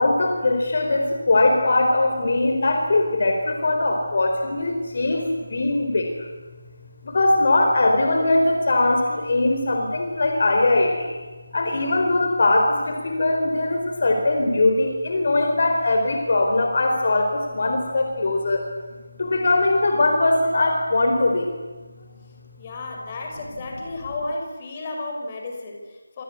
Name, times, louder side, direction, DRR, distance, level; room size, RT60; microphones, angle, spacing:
voice 1, 0.0-6.3 7.0-11.2 11.5-18.6 19.2-21.5, left 2 dB, 45° left, 4 dB, 4.2 m, -21 dB
voice 2, 22.6-26.2, left 2 dB, 25° left, 1 dB, 5.2 m, -33 dB
27.0 x 26.0 x 8.4 m, 1.3 s
figure-of-eight pair, 160°, 0 cm